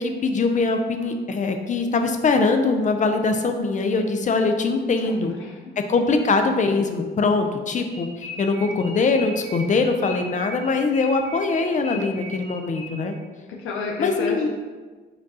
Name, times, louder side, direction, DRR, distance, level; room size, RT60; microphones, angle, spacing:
voice 1, 0.0-5.3 5.8-13.1 14.0-14.5, left 3 dB, 40° left, 6 dB, 0.5 m, -22 dB
voice 2, 5.0-5.7 13.5-14.5, left 4 dB, 85° left, 0 dB, 0.5 m, -30 dB
sound 1, 7.9-13.2, left 1 dB, 20° left, 1.1 m, -38 dB
5.1 x 2.3 x 4.0 m, 1.4 s
cardioid pair, 90°, 20 cm